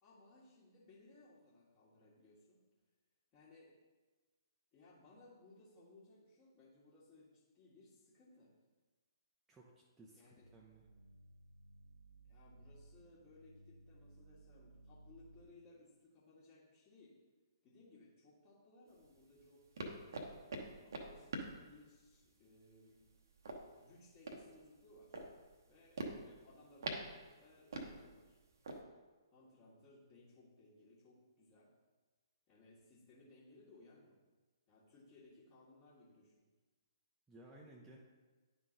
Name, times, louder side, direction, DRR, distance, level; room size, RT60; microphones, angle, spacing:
voice 1, 0.0-2.6 3.3-3.8 4.7-8.5 10.1-10.5 12.2-17.2 17.6-19.6 20.8-23.0 23.7-25.2 25.7-28.4 29.3-31.7 32.5-34.2 34.7-36.4, left 2 dB, 30° left, -10 dB, 1.6 m, -63 dB
voice 2, 9.5-10.9 37.3-38.0, right 1 dB, 10° right, -3 dB, 0.6 m, -59 dB
sound 1, 10.4-15.4, right 2 dB, 85° left, 0.5 m, -61 dB
sound 2, 18.9-28.8, right 2 dB, 50° right, 0.9 m, -47 dB
10.5 x 3.7 x 3.8 m, 1.3 s
figure-of-eight pair, 125°, 2 cm